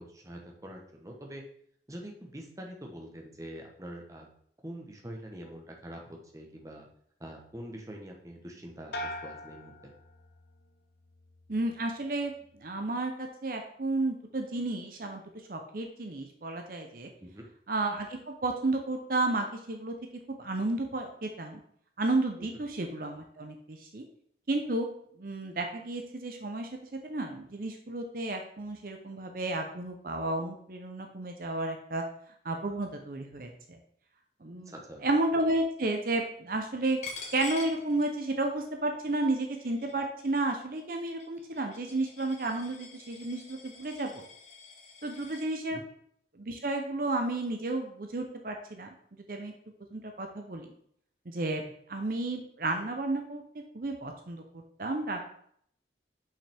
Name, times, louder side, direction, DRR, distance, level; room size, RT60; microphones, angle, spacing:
voice 1, 0.0-1.4 1.9-4.3 4.6-6.9 7.2-9.9 17.2-17.5 22.4-22.6 34.5-35.0 45.7-45.8, right 1 dB, 20° right, 1 dB, 0.9 m, -45 dB
sound 1, 8.9-10.7 11.1-11.6, left 1 dB, 60° left, 0.7 m, -42 dB
voice 2, 11.5-12.3 12.6-15.2 15.5-17.1 17.7-19.9 20.3-21.6 22.0-24.0 24.5-24.9 25.2-26.7 27.0-32.0 32.4-33.5 34.4-34.7 35.0-37.0 37.3-44.2 45.0-45.8 46.4-48.9 49.3-49.5 49.9-50.7 51.3-51.6 51.9-53.4 53.7-54.4 54.8-55.2, right 2 dB, 50° right, 4 dB, 0.7 m, -32 dB
Coin (dropping), 37.0-38.5 38.9-45.5, left 5 dB, 40° left, 1.2 m, -47 dB
5.7 x 5.6 x 3.4 m, 0.66 s
head